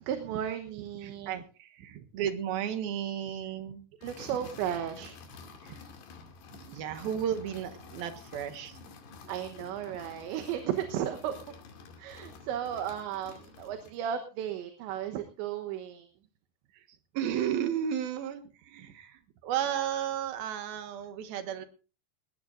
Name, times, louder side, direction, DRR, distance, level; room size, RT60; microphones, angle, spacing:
voice 1, 0.0-1.4 1.9-2.1 4.0-5.2 6.7-6.8 9.3-11.4 12.0-16.1, right 10 dB, 90° right, 6 dB, 3.4 m, -35 dB
voice 2, 1.0-3.8 5.6-5.7 6.6-8.9 17.1-21.7, right 9 dB, 65° right, 9 dB, 2.9 m, -33 dB
sound 1, 4.0-14.0, left 5 dB, 70° left, 4.4 m, -50 dB
19.5 x 19.0 x 2.5 m, 0.34 s
omnidirectional pair, 5.0 m